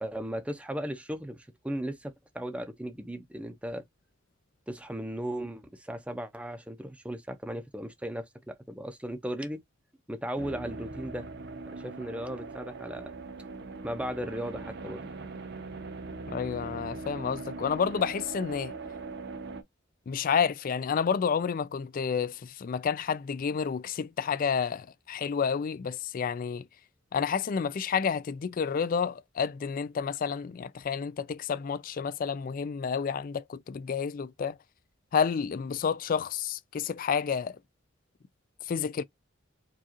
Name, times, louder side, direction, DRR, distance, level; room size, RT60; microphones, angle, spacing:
voice 1, 0.0-3.8 4.7-9.6 10.1-11.3 11.6-13.1 13.8-15.0, equal, 5° right, 0.6 m, -36 dB
sound 1, 10.4-19.6, right 3 dB, 55° right, 0.7 m, -41 dB
voice 2, 16.3-18.7 20.1-26.7 27.1-34.6 35.1-37.6 38.7-39.0, left 6 dB, 45° left, 0.3 m, -30 dB
4.7 x 2.4 x 2.9 m
head